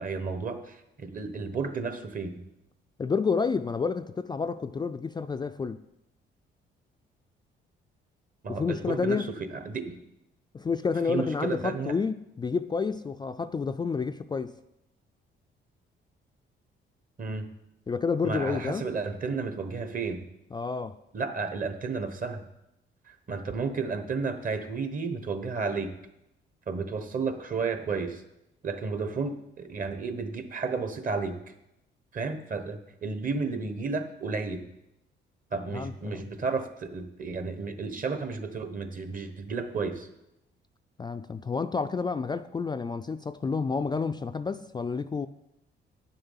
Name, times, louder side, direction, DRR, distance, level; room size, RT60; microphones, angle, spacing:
voice 1, 0.0-2.4 8.4-10.0 11.1-11.9 17.2-17.5 18.2-20.2 21.1-22.5 23.1-25.9 26.7-28.2 28.6-31.4 32.1-34.6 35.5-40.1, right 4 dB, 45° right, 1.2 m, -32 dB
voice 2, 3.0-5.8 8.5-9.3 10.5-14.6 17.9-18.9 20.5-21.0 35.7-36.2 41.0-45.3, left 5 dB, 20° left, 0.3 m, -30 dB
9.6 x 7.0 x 5.6 m
cardioid pair, 90°, 20 cm